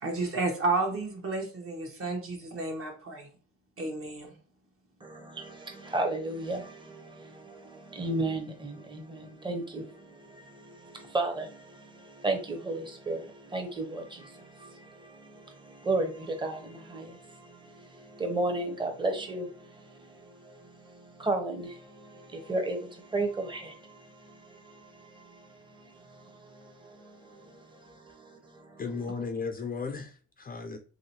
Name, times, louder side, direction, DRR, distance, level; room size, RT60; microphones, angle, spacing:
voice 1, 0.0-3.3 3.8-4.3, right 3 dB, 45° right, 1.1 m, -31 dB
voice 2, 5.0-28.8, right 2 dB, 15° right, 0.8 m, -35 dB
voice 3, 28.8-30.8, left 4 dB, 30° left, 0.4 m, -35 dB
3.1 x 2.8 x 2.8 m
cardioid pair, 90°, 30 cm